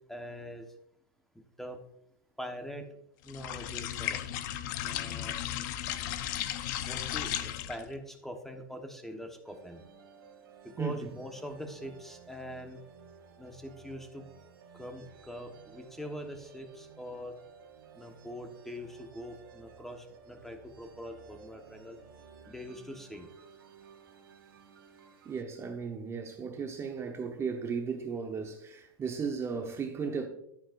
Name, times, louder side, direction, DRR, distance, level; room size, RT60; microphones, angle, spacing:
voice 1, 0.1-0.6 1.6-1.8 2.4-2.8 3.2-4.2 4.8-5.3 6.9-9.8 10.8-12.8 13.4-14.2 14.8-17.3 17.9-22.0 22.5-23.3, equal, 5° left, 1.3 m, -43 dB
sound 1, 3.3-7.9, left 11 dB, 60° left, 0.8 m, -35 dB
sound 2, 9.5-25.4, right 6 dB, 90° right, 1.9 m, -55 dB
voice 2, 10.8-11.1 25.2-30.3, right 5 dB, 25° right, 1.1 m, -35 dB
11.0 x 9.9 x 2.6 m
hypercardioid pair, 120°, 11 cm